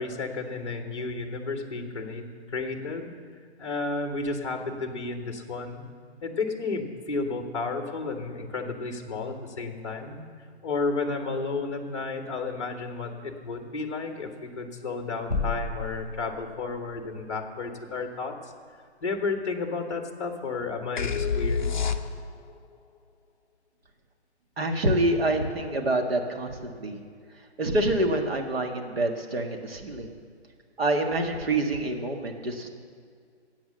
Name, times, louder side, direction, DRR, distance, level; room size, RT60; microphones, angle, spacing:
voice 1, 0.0-3.1 3.6-5.9 6.2-10.2 10.6-18.5 19.0-21.7, left 3 dB, 25° left, 5 dB, 1.3 m, -32 dB
sound 1, 15.3-16.9, left 3 dB, 15° right, 2.5 m, -32 dB
sound 2, 21.0-22.5, left 5 dB, 45° left, 0.6 m, -27 dB
voice 2, 24.6-27.0 27.6-30.1 30.8-32.7, right 1 dB, 60° right, 3 dB, 1.7 m, -26 dB
14.0 x 8.7 x 7.6 m, 2.1 s
hypercardioid pair, 175°, 34 cm